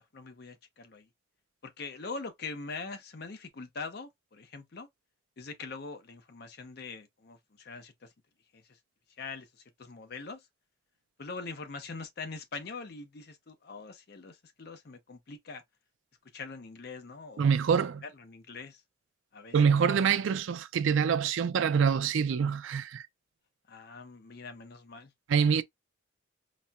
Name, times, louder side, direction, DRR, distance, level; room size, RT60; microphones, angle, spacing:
voice 1, 0.1-1.1 1.6-4.9 5.4-8.1 8.5-8.8 9.2-10.5 11.2-15.6 16.3-17.5 18.0-18.8 19.3-19.6 23.7-25.1, left 4 dB, 50° left, 0.5 m, -43 dB
voice 2, 17.4-18.0 19.5-23.1 25.3-25.6, right 6 dB, 75° right, 0.4 m, -25 dB
4.1 x 2.1 x 2.3 m
head